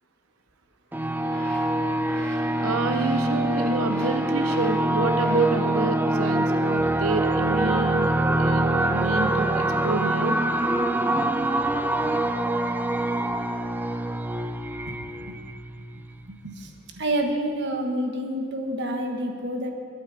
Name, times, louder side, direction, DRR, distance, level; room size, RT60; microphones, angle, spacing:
sound 1, 0.9-5.9, equal, 5° left, 1.9 m, -43 dB
sound 2, 0.9-16.2, right 1 dB, 10° right, 0.4 m, -24 dB
voice 1, 2.6-8.1 8.4-10.4, right 3 dB, 80° right, 7 dB, 0.8 m, -28 dB
voice 2, 14.9-15.4 15.9-19.7, right 1 dB, 55° right, 3 dB, 1.4 m, -29 dB
21.0 x 8.7 x 4.1 m, 2.2 s
head